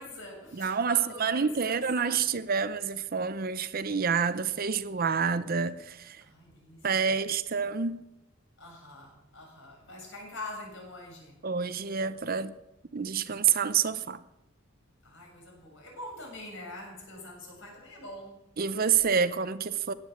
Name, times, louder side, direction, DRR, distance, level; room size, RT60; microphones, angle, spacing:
voice 1, 0.0-2.1 6.2-7.1 8.6-11.4 15.0-18.4, left 2 dB, 65° left, 6.7 m, -44 dB
voice 2, 0.6-6.2 6.8-8.0 11.4-12.5 12.9-14.2 18.6-19.9, right 6 dB, 45° right, 0.6 m, -28 dB
16.0 x 9.7 x 7.3 m
head